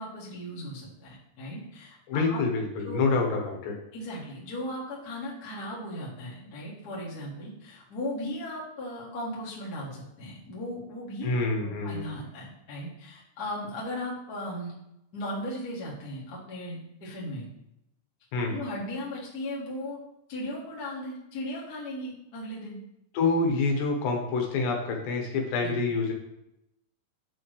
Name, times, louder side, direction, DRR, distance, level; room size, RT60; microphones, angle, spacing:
voice 1, 0.0-2.4 2.8-3.1 3.9-11.3 11.6-14.7 15.1-17.4 18.5-20.0 20.3-22.8 25.6-25.8, left 1 dB, 40° left, -5 dB, 1.4 m, -37 dB
voice 2, 2.1-3.7 11.2-12.2 18.3-18.6 23.1-26.1, left 3 dB, 75° left, 2 dB, 3.2 m, -27 dB
8.5 x 7.0 x 3.3 m, 0.85 s
omnidirectional pair, 5.1 m